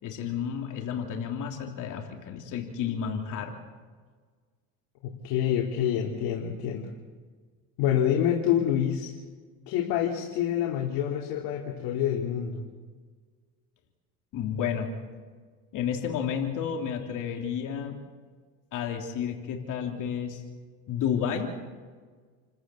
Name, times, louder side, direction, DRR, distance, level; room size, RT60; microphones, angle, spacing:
voice 1, 0.0-3.6 14.3-14.9 15.7-18.0 18.7-20.4 20.9-21.6, left 8 dB, 60° left, 2 dB, 3.3 m, -31 dB
voice 2, 5.0-6.9 7.8-9.1 9.7-12.6, left 10 dB, 80° left, -1 dB, 3.2 m, -27 dB
29.5 x 14.5 x 8.6 m, 1.5 s
cardioid pair, 110°, 35 cm